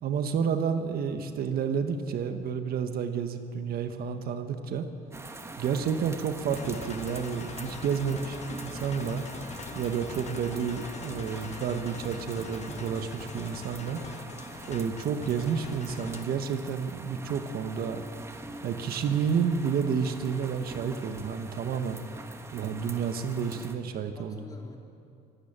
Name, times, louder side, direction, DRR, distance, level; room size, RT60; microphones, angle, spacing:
voice 1, 0.0-4.9 5.6-8.4 8.6-9.2 9.7-14.0 14.7-18.0 18.6-22.0 22.5-24.4, right 7 dB, 65° right, 7 dB, 1.5 m, -30 dB
sound 1, 5.1-23.7, right 2 dB, 15° right, 1.6 m, -44 dB
sound 2, 6.5-16.4, left 6 dB, 40° left, 1.2 m, -43 dB
voice 2, 13.9-14.2 24.2-24.8, left 3 dB, 20° left, 1 dB, 3.6 m, -47 dB
25.5 x 12.5 x 9.0 m, 2.4 s
cardioid pair, 110°, 17 cm